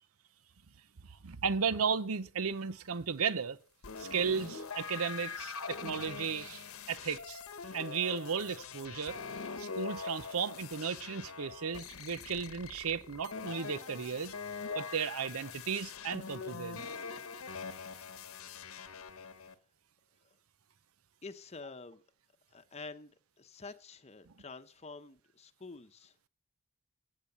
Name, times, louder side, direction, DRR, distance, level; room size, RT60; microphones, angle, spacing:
voice 1, 1.1-3.6 4.0-7.4 7.7-9.2 9.6-14.3 14.7-16.8, right 6 dB, 80° right, 0.7 m, -35 dB
sound 1, 3.8-19.5, left 5 dB, 75° left, 1.1 m, -43 dB
voice 2, 21.2-22.0 22.5-26.3, left 3 dB, 30° left, 0.8 m, -48 dB
16.0 x 8.9 x 6.8 m
head